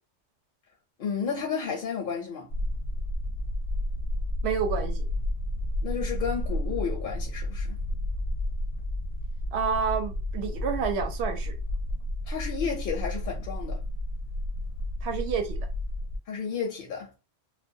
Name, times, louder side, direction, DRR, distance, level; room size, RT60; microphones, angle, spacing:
voice 1, 1.0-2.5 5.8-7.8 12.3-13.8 16.3-17.1, left 6 dB, 60° left, 0.6 m, -32 dB
sound 1, 2.5-16.2, left 1 dB, 80° left, 0.9 m, -31 dB
voice 2, 4.4-5.0 9.5-11.5 15.0-15.6, right 6 dB, 65° right, 0.8 m, -29 dB
2.3 x 2.1 x 2.6 m
omnidirectional pair, 1.3 m